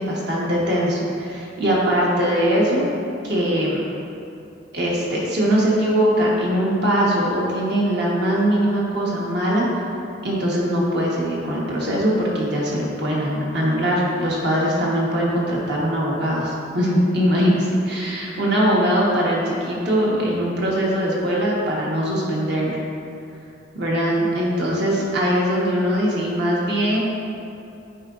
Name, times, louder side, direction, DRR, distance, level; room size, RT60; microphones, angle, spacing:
voice 1, 0.0-2.9 3.2-3.9 4.7-9.7 10.2-22.8 23.7-27.0, equal, 60° right, -5 dB, 1.3 m, -21 dB
8.6 x 4.7 x 2.6 m, 2.7 s
head